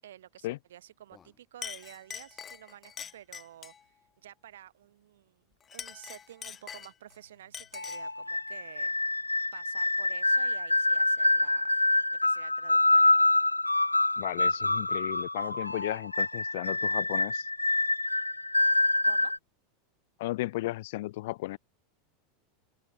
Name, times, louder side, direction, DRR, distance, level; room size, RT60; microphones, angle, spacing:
voice 1, 0.0-5.4 5.7-9.0 9.5-11.7 12.1-13.3 19.0-19.3, right 12 dB, 65° right, 8.0 m, -51 dB
Chink clink, 1.1-1.3 1.6-3.8 5.6-7.2 7.5-8.1, left 7 dB, 25° left, 1.5 m, -43 dB
sound 1, 7.8-19.4, left 2 dB, 85° left, 0.8 m, -26 dB
voice 2, 14.2-17.5 20.2-21.6, left 18 dB, 55° left, 1.7 m, -35 dB
open air
figure-of-eight pair, 85°, 0 cm